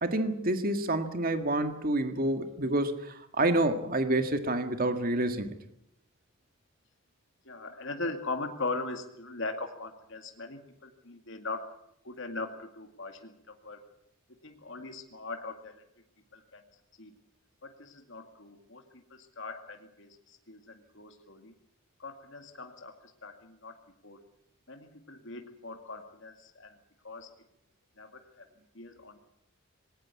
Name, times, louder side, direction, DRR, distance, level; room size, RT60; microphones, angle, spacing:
voice 1, 0.0-5.6, right 1 dB, 45° right, 8 dB, 1.8 m, -28 dB
voice 2, 7.5-11.6 12.0-13.8 14.4-15.8 16.3-16.6 17.0-17.1 17.6-18.8 19.1-21.5 22.0-22.9 23.2-23.7 24.0-24.2 24.7-26.8 27.0-27.3 28.0-28.5 28.7-29.2, left 3 dB, 60° left, 4 dB, 2.2 m, -40 dB
19.5 x 18.5 x 8.5 m, 0.77 s
head